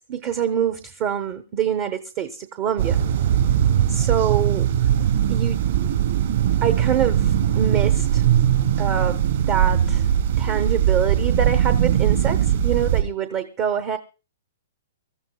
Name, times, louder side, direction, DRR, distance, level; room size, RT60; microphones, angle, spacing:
voice 1, 0.1-3.0 3.9-4.9 5.3-5.7 6.6-8.2 8.8-9.2 9.5-10.1 10.4-14.0, right 8 dB, 25° right, 9 dB, 0.8 m, -25 dB
sound 1, 2.8-13.0, right 10 dB, 60° right, 3.1 m, -20 dB
24.5 x 14.0 x 2.3 m, 0.33 s
hypercardioid pair, 170°, 0 cm